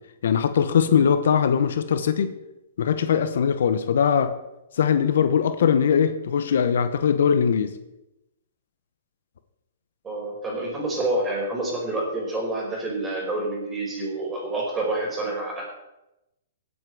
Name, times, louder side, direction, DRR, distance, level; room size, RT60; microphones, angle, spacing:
voice 1, 0.2-2.3 2.8-4.3 4.8-7.7, left 7 dB, 70° left, 10 dB, 1.0 m, -21 dB
voice 2, 10.0-15.7, right 2 dB, 15° right, -2 dB, 5.1 m, -28 dB
17.5 x 8.1 x 4.8 m, 0.93 s
hypercardioid pair, 145°, 0 cm